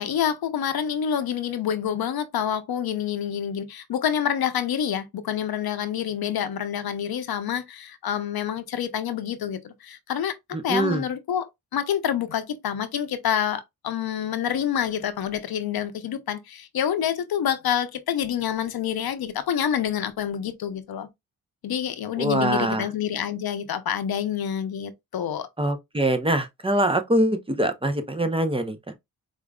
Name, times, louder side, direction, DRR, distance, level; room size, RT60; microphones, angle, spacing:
voice 1, 0.0-10.4 10.6-21.1 21.6-25.5, left 9 dB, 80° left, 0.6 m, -27 dB
voice 2, 10.5-11.0 22.2-22.8 25.6-28.8, right 1 dB, 15° right, 0.7 m, -23 dB
4.8 x 2.5 x 2.2 m
cardioid pair, 70°, 36 cm